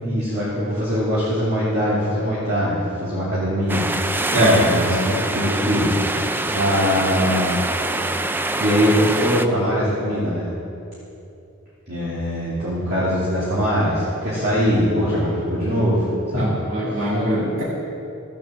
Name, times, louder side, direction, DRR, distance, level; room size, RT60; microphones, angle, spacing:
voice 1, 0.0-5.9 6.5-7.6 8.6-10.5 11.9-16.5 16.9-17.1, equal, 45° right, -10 dB, 2.8 m, -22 dB
sound 1, 3.7-9.5, right 2 dB, 10° right, 0.4 m, -25 dB
voice 2, 16.3-17.6, equal, 65° right, -6 dB, 2.4 m, -20 dB
16.0 x 6.8 x 7.5 m, 2.8 s
head